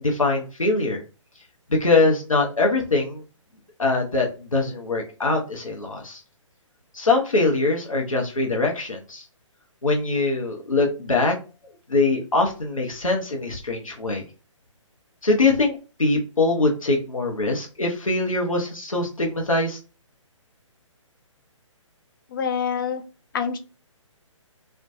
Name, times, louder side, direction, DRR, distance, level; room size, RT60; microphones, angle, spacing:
voice 1, 0.0-1.0 1.8-3.2 3.8-6.2 6.9-9.2 9.8-11.3 11.9-14.2 15.2-19.8, left 3 dB, 90° left, 1 dB, 0.6 m, -23 dB
voice 2, 22.3-23.0 23.3-23.6, left 7 dB, 40° left, 7 dB, 0.4 m, -26 dB
2.5 x 2.1 x 2.4 m, 0.34 s
figure-of-eight pair, 135°, 17 cm